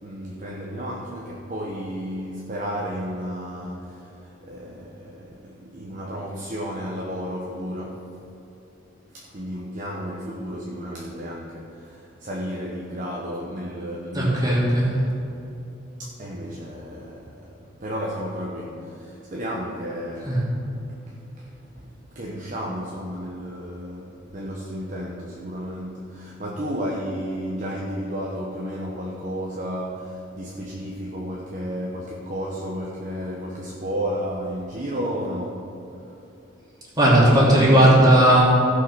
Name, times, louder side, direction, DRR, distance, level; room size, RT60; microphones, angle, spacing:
voice 1, 0.0-8.2 9.1-14.7 16.0-20.7 21.1-35.7, equal, 40° right, -3 dB, 1.0 m, -32 dB
voice 2, 14.1-14.9 20.3-20.4 37.0-38.4, right 1 dB, 20° right, -6 dB, 2.8 m, -16 dB
15.5 x 5.5 x 5.7 m, 3.0 s
head